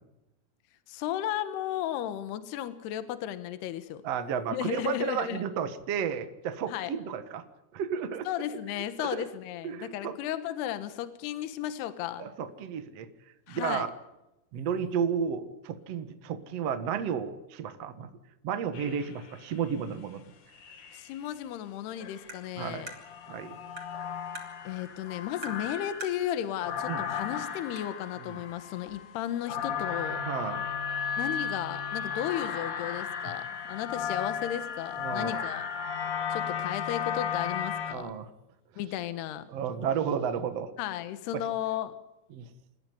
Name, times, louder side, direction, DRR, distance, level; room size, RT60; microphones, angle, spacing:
voice 1, 0.9-4.0 4.5-5.4 6.7-6.9 8.3-12.3 13.5-13.9 20.9-22.9 24.6-30.2 31.2-35.7 36.3-38.1 38.8-39.4 40.8-41.9, left 11 dB, 70° left, 11 dB, 3.2 m, -34 dB
voice 2, 4.0-7.4 7.7-8.3 9.0-9.2 9.6-10.1 12.2-13.1 13.5-13.9 14.5-18.1 18.4-20.2 22.6-22.8 23.3-23.6 26.9-27.0 28.2-28.4 30.2-30.7 33.3-33.4 35.0-35.4 37.9-38.3 39.5-40.7 41.3-41.4 42.3-42.5, right 7 dB, 55° right, 9 dB, 1.8 m, -32 dB
sound 1, 18.7-19.5 20.5-21.3 22.0-37.9, left 7 dB, 50° left, 3.1 m, -35 dB
Tap, 22.3-22.4 22.9-23.0 23.8-23.9 24.3-24.5 25.4-25.6 26.0-26.2 27.2-27.3 27.8-27.9, right 2 dB, 30° right, 4.1 m, -41 dB
28.5 x 15.0 x 9.4 m, 0.95 s
omnidirectional pair, 5.0 m